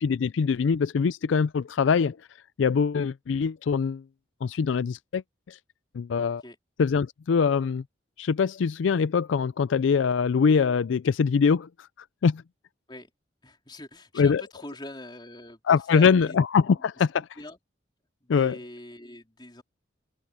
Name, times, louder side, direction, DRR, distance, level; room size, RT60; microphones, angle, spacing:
voice 1, 0.0-2.2 2.6-4.0 4.4-5.2 5.5-5.6 5.9-6.4 6.8-7.8 8.2-11.7 12.2-12.4 14.2-14.4 15.7-17.3 18.3-18.6, left 6 dB, 80° left, 0.4 m, -23 dB
voice 2, 13.4-15.6 15.9-16.4 16.8-17.1 17.4-17.6 18.2-19.6, left 1 dB, 25° left, 4.0 m, -43 dB
head